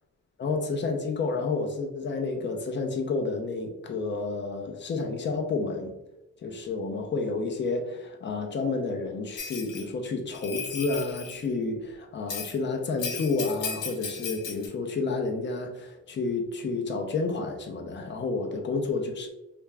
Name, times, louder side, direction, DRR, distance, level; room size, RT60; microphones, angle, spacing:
voice 1, 0.4-6.0 6.4-19.3, left 3 dB, 40° left, 3 dB, 0.5 m, -30 dB
Bell, 9.4-9.8 10.3-11.4 12.3-12.6 13.0-14.7, left 5 dB, 80° left, 0.7 m, -36 dB
2.4 x 2.3 x 3.2 m, 0.93 s
cardioid pair, 90°, 30 cm